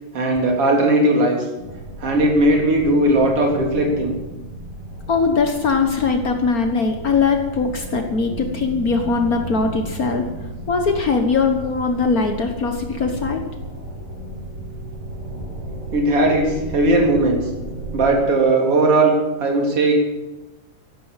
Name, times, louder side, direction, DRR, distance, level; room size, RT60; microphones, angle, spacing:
voice 1, 0.1-1.4 2.0-4.1 15.9-17.4 17.9-19.1 19.4-19.9, right 2 dB, 45° right, 0 dB, 4.3 m, -17 dB
sound 1, 1.6-18.1, right 1 dB, 60° right, 7.6 m, -34 dB
voice 2, 5.1-10.2 10.7-13.4, left 4 dB, 85° left, 5 dB, 0.8 m, -20 dB
15.0 x 12.0 x 7.4 m, 1.1 s
omnidirectional pair, 3.8 m